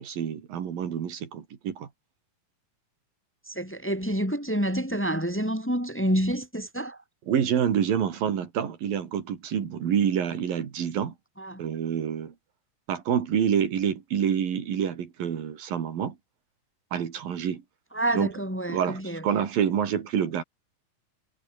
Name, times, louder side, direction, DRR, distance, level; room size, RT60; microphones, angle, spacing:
voice 1, 0.0-1.9 7.3-11.1 11.6-12.3 12.9-16.2 16.9-17.6 18.1-18.3 18.7-20.4, right 8 dB, 90° right, 4.5 m, -27 dB
voice 2, 3.5-7.0 11.4-11.6 17.9-19.3, right 1 dB, 5° left, 1.8 m, -28 dB
omnidirectional pair, 3.9 m